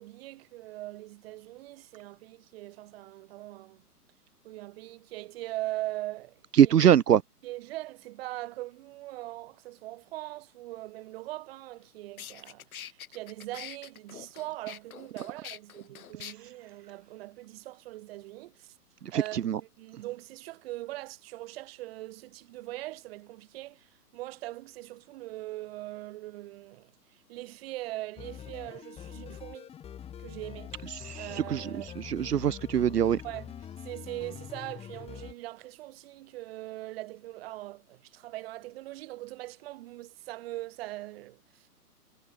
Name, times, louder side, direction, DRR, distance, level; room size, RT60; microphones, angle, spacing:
voice 1, 0.0-3.8 4.4-6.8 7.4-18.8 19.1-29.7 30.2-30.9 31.2-31.9 33.2-33.5 33.8-41.7, right 17 dB, 40° right, 6.3 m, -41 dB
voice 2, 6.6-7.2 19.3-19.6 31.0-31.7 32.0-33.2, right 9 dB, 75° right, 1.3 m, -22 dB
sound 1, 11.7-11.8 12.2-16.3, left 9 dB, 60° left, 6.5 m, -45 dB
sound 2, 28.2-35.3, left 9 dB, 10° left, 3.0 m, -44 dB
hypercardioid pair, 150°, 47 cm